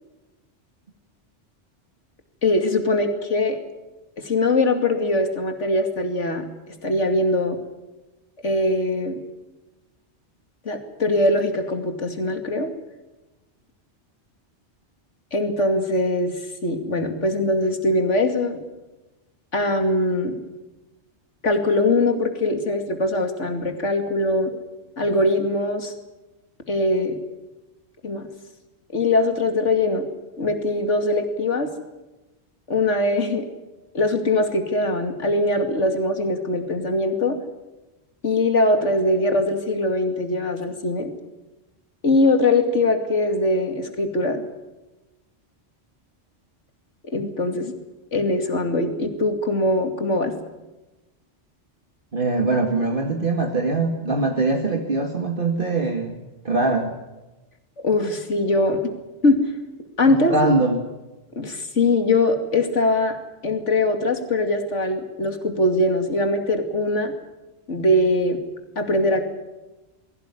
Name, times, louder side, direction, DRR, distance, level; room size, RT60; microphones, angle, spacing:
voice 1, 2.4-3.6 4.2-6.5 6.8-7.6 8.4-9.2 10.7-12.7 15.3-16.3 16.6-18.6 19.5-20.4 21.4-24.6 25.0-25.9 26.7-27.2 28.0-28.3 28.9-30.1 30.4-31.7 32.7-33.5 33.9-37.4 38.2-41.1 42.0-44.4 47.0-47.7 48.1-50.3 57.8-58.9 59.2-59.4 60.0-60.4 61.4-63.2 63.4-67.1 67.7-68.4 68.8-69.3, left 2 dB, 85° left, 6 dB, 2.9 m, -22 dB
voice 2, 52.1-56.2 56.4-56.9 60.1-60.8, right 3 dB, 45° right, 3 dB, 2.3 m, -22 dB
21.5 x 17.0 x 9.9 m, 1.1 s
omnidirectional pair, 1.2 m